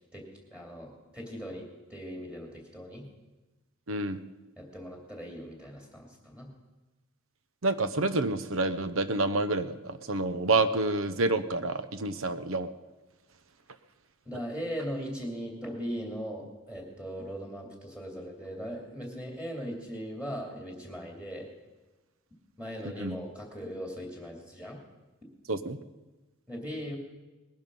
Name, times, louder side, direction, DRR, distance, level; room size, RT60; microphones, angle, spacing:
voice 1, 0.5-3.1 4.6-6.5 14.2-21.5 22.6-24.8 26.5-27.0, equal, 5° right, 1 dB, 2.6 m, -39 dB
voice 2, 3.9-4.2 7.6-12.7 23.0-23.2 25.5-25.8, right 2 dB, 65° right, 13 dB, 0.8 m, -28 dB
20.0 x 11.5 x 5.4 m, 1.1 s
head